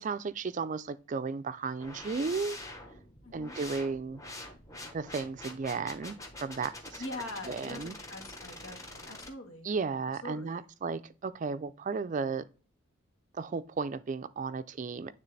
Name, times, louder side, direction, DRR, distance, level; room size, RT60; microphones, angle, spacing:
voice 1, 0.0-2.6 3.3-4.2 4.9-7.0 7.5-8.0 9.6-12.4 13.3-15.1, right 4 dB, 35° right, 0.3 m, -34 dB
sound 1, 1.8-9.3, left 2 dB, 15° left, 1.0 m, -45 dB
voice 2, 3.2-3.6 7.0-9.7 10.2-10.7, left 2 dB, 85° left, 1.6 m, -43 dB
9.1 x 3.4 x 3.3 m
head